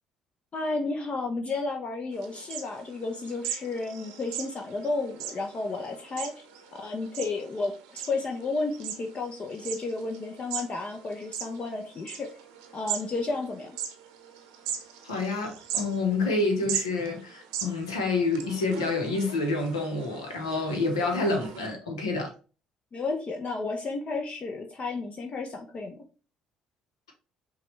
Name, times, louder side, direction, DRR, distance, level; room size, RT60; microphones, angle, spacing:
voice 1, 0.5-6.4 6.7-12.3 12.7-13.7 22.9-26.0, left 3 dB, 40° left, 0.7 m, -32 dB
sound 1, 2.1-21.7, right 9 dB, 80° right, 0.7 m, -40 dB
voice 2, 15.0-22.3, left 3 dB, 85° left, 0.9 m, -28 dB
5.7 x 2.4 x 3.2 m
hypercardioid pair, 50°, 3 cm